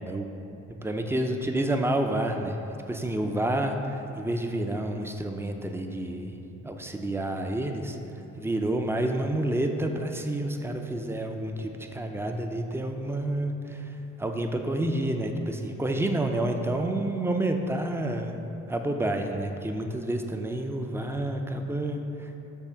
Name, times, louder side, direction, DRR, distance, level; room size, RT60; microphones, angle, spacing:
voice 1, 0.8-2.6 2.9-6.4 6.6-18.4 18.7-22.4, right 1 dB, 10° right, 4 dB, 0.4 m, -29 dB
7.0 x 2.5 x 5.5 m, 3.0 s
cardioid pair, 90°, 30 cm